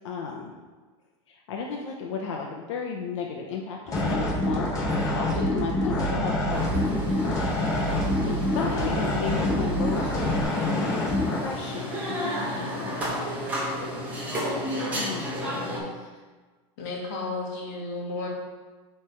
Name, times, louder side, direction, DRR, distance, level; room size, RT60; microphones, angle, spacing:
voice 1, 0.0-0.5 1.3-4.7 5.1-6.6 8.2-13.4 14.9-16.1, left 5 dB, 85° left, 0 dB, 0.8 m, -35 dB
sound 1, 3.9-11.5, left 2 dB, 25° left, 0.9 m, -27 dB
sound 2, 4.0-10.4, right 6 dB, 25° right, 1.5 m, -33 dB
sound 3, 6.5-15.8, equal, 10° right, 1.2 m, -32 dB
voice 2, 12.4-12.9 15.5-15.9 16.8-18.3, left 3 dB, 50° left, -3 dB, 1.6 m, -35 dB
7.2 x 3.3 x 4.4 m, 1.3 s
supercardioid pair, 175°, 15 cm